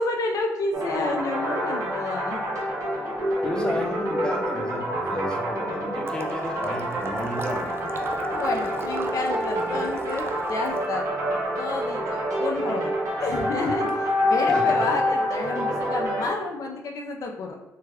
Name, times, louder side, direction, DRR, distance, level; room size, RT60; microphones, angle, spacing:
voice 1, 0.0-2.4 8.3-11.1 11.6-12.9 13.2-17.5, left 3 dB, 70° left, 2 dB, 0.5 m, -29 dB
sound 1, 0.7-16.3, equal, 60° right, 1.1 m, -27 dB
voice 2, 3.4-8.0 13.6-13.7 14.5-14.8, equal, 10° left, -1 dB, 0.8 m, -33 dB
Water / Liquid, 6.1-10.9, right 4 dB, 40° right, 0.4 m, -38 dB
3.2 x 2.3 x 3.4 m, 1.0 s
cardioid pair, 70°, 6 cm